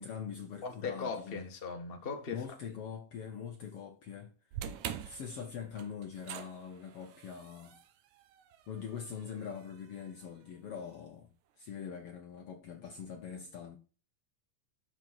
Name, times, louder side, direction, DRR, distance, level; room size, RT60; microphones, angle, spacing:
voice 1, 0.0-1.5 2.3-4.7 5.1-7.8 8.7-11.3 11.6-13.8, left 7 dB, 65° left, 1.6 m, -43 dB
voice 2, 0.6-2.4, left 4 dB, 25° left, 1.2 m, -38 dB
sound 1, 4.5-10.8, right 10 dB, 75° right, 2.2 m, -46 dB
12.5 x 5.1 x 4.3 m
omnidirectional pair, 3.5 m